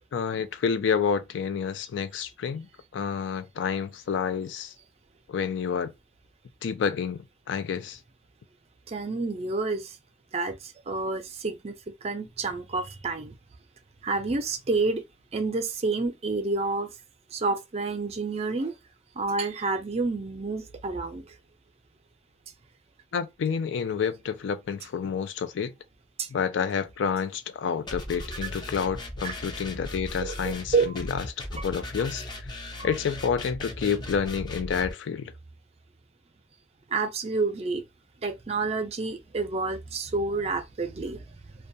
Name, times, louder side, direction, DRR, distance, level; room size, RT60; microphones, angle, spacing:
voice 1, 0.1-2.7 2.9-4.7 5.3-5.9 6.6-8.0 23.1-25.7 26.3-31.2 31.5-32.5 32.8-35.3, left 6 dB, 85° left, 0.4 m, -29 dB
voice 2, 8.9-10.0 10.3-13.3 14.0-15.0 15.3-16.9 17.3-18.8 19.2-21.3 26.2-26.3 28.4-28.5 29.2-29.3 30.2-31.0 32.8-32.9 36.9-37.8 38.2-41.4, right 3 dB, 35° right, 0.4 m, -29 dB
sound 1, 27.9-34.9, left 1 dB, 25° left, 0.5 m, -37 dB
2.2 x 2.2 x 2.6 m
head